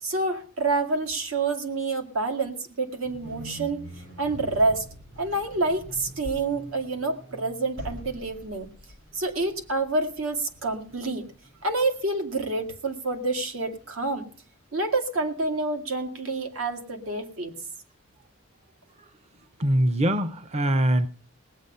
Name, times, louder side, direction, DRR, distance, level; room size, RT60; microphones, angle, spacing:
voice 1, 0.0-3.9 4.2-4.9 5.2-8.7 9.1-11.3 11.6-14.3 14.7-17.5, right 2 dB, 85° right, 5 dB, 2.1 m, -28 dB
sound 1, 3.0-14.2, equal, 65° right, 5.2 m, -44 dB
voice 2, 19.6-21.1, right 1 dB, 30° right, 12 dB, 0.6 m, -22 dB
19.5 x 8.4 x 5.5 m, 0.42 s
head